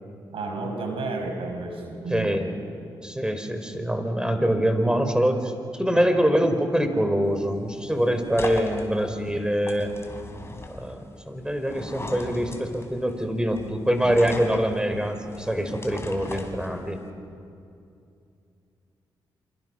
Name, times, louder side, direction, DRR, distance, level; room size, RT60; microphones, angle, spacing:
voice 1, 0.3-2.3, right 3 dB, 75° right, 3 dB, 5.9 m, -31 dB
voice 2, 2.1-2.5 3.0-9.9 10.7-17.0, equal, 10° right, 7 dB, 4.7 m, -24 dB
sound 1, 7.2-17.1, left 2 dB, 25° left, 5.0 m, -39 dB
27.5 x 27.5 x 6.4 m, 2.5 s
supercardioid pair, 45°, 9 cm